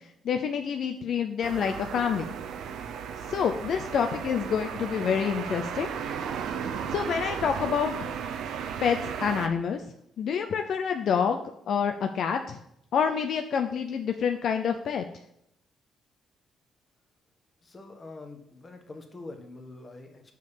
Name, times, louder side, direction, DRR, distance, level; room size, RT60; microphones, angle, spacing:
voice 1, 0.2-2.3 3.3-5.9 6.9-8.1 8.8-9.8 10.2-12.6 12.9-15.0, left 7 dB, 65° left, 6 dB, 0.5 m, -27 dB
sound 1, 1.4-9.5, right 7 dB, 80° right, 0.8 m, -35 dB
voice 2, 17.6-20.3, left 2 dB, 30° left, 4 dB, 1.5 m, -45 dB
6.6 x 5.3 x 6.8 m, 0.76 s
cardioid pair, 90°, 0 cm